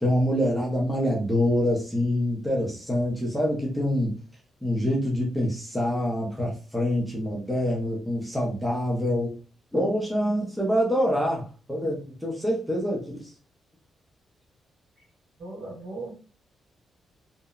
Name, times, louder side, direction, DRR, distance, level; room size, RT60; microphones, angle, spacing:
voice 1, 0.0-4.1 4.6-9.4 9.7-13.3, equal, ahead, 0.5 m, -26 dB
voice 2, 15.4-16.1, right 2 dB, 60° right, 1.3 m, -37 dB
2.8 x 2.0 x 2.3 m
wide cardioid pair, 170°, 0 cm